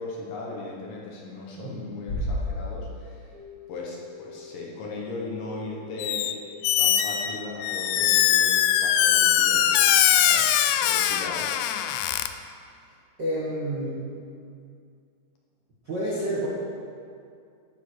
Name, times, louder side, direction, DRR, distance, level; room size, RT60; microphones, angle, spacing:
voice 1, 0.0-3.3 3.7-6.3 6.8-10.0 10.2-11.5, left 3 dB, 65° left, -2 dB, 2.8 m, -38 dB
voice 2, 1.6-1.9 13.2-14.1 15.8-16.5, right 1 dB, 45° right, -9 dB, 1.5 m, -29 dB
Bass drum, 2.1-3.8, left 1 dB, 50° left, 1.3 m, -32 dB
sound 1, 3.3-9.4, left 6 dB, 65° right, 3.5 m, -46 dB
Squeak, 6.0-6.3 6.6-12.3, left 11 dB, 90° left, 2.7 m, -22 dB
12.0 x 7.2 x 6.4 m, 2.3 s
omnidirectional pair, 4.6 m